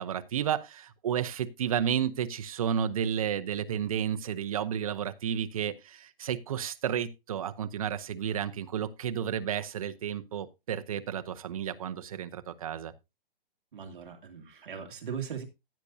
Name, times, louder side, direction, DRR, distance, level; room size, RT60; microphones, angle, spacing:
voice 1, 0.0-12.9, right 9 dB, 35° right, 0.7 m, -32 dB
voice 2, 13.7-15.4, right 7 dB, 55° right, 2.2 m, -39 dB
15.0 x 8.3 x 2.7 m
hypercardioid pair, 170°, 30 cm